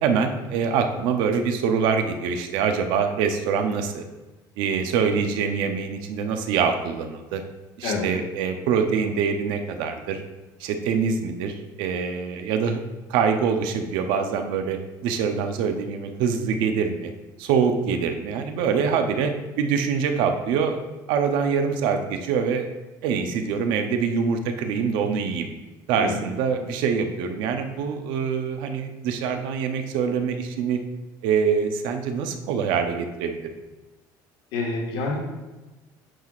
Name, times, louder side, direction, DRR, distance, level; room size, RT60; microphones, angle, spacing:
voice 1, 0.0-4.0 4.6-7.4 7.8-10.2 10.6-12.8 13.1-17.1 17.4-22.7 23.0-25.5 25.9-30.8 31.2-33.4, right 6 dB, 75° right, 6 dB, 0.7 m, -24 dB
voice 2, 34.5-35.2, left 3 dB, 85° left, -2 dB, 1.6 m, -27 dB
9.1 x 5.8 x 2.4 m, 1.1 s
cardioid pair, 155°, 8 cm